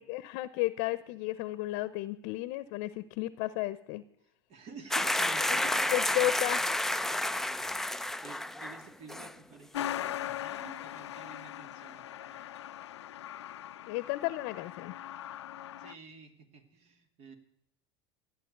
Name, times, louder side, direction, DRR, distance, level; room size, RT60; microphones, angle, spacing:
voice 1, 0.0-4.0 5.5-5.6 5.9-6.6 13.8-15.0, left 17 dB, 60° left, 16 dB, 0.8 m, -33 dB
voice 2, 4.5-6.3 7.0-7.6 7.9-12.4 15.8-17.4, right 5 dB, 50° right, 7 dB, 2.7 m, -51 dB
sound 1, 4.9-8.8 9.1-9.3, left 1 dB, 5° left, 0.5 m, -30 dB
Truck, 9.7-15.9, left 12 dB, 90° left, 0.6 m, -40 dB
15.0 x 10.0 x 8.0 m, 0.74 s
hypercardioid pair, 90°, 14 cm